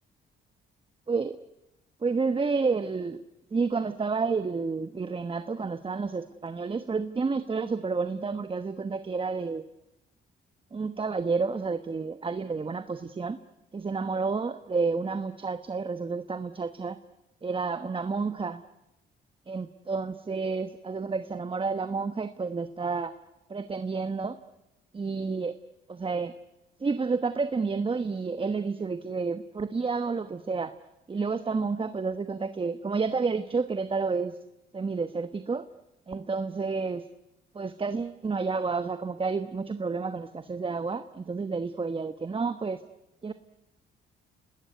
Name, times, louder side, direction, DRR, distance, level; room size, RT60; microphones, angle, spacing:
voice 1, 1.1-1.4 2.0-3.2 3.5-9.7 10.7-13.4 13.7-17.0 17.4-18.6 19.5-23.1 23.5-24.4 24.9-25.6 25.9-26.3 26.8-30.7 31.1-34.4 34.7-35.7 36.1-37.1 37.5-42.8 43.2-43.3, right 4 dB, 25° right, 10 dB, 1.2 m, -30 dB
30.0 x 19.5 x 9.5 m, 0.95 s
cardioid pair, 90°, 20 cm